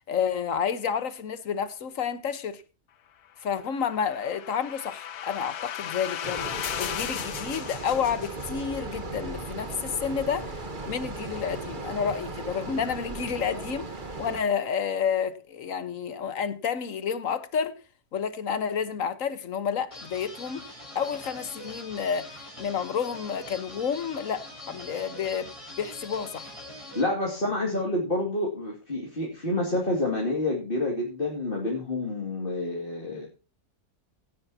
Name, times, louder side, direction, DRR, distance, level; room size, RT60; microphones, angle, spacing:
voice 1, 0.1-2.6 3.4-6.5 6.8-10.6 10.9-13.9 14.2-17.8 18.1-20.6 20.9-25.5 25.8-26.6, left 7 dB, 60° left, 1.5 m, -30 dB
sound 1, 3.6-8.8, left 10 dB, 90° left, 1.4 m, -36 dB
sound 2, 6.2-14.4, right 3 dB, 35° right, 1.5 m, -37 dB
sound 3, 19.9-27.0, left 1 dB, 20° left, 5.1 m, -43 dB
voice 2, 26.9-33.3, left 2 dB, 35° left, 2.7 m, -28 dB
17.0 x 10.5 x 2.8 m
omnidirectional pair, 1.6 m